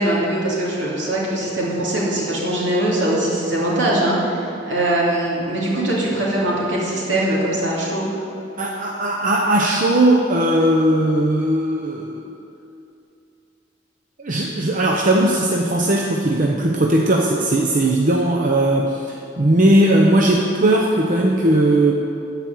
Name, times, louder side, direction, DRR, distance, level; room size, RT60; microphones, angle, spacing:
voice 1, 0.0-8.1, right 1 dB, 75° right, -5 dB, 2.8 m, -21 dB
voice 2, 8.6-12.2 14.2-21.9, right 1 dB, 45° right, -1 dB, 0.8 m, -18 dB
13.5 x 4.9 x 7.7 m, 2.7 s
head